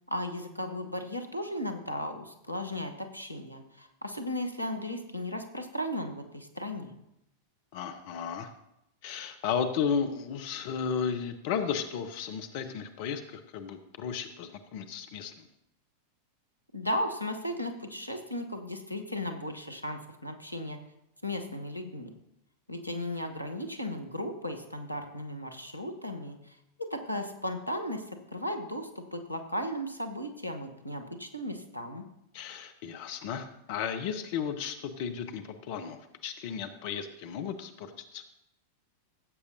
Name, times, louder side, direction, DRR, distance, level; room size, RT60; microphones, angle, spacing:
voice 1, 0.1-7.0 16.7-20.8 21.2-22.1 22.7-32.0, left 1 dB, 90° left, 6 dB, 1.0 m, -36 dB
voice 2, 7.7-8.5 9.0-15.5 32.3-38.2, left 7 dB, 50° left, 7 dB, 0.7 m, -34 dB
16.5 x 8.1 x 2.7 m, 0.82 s
figure-of-eight pair, 90°, 0 cm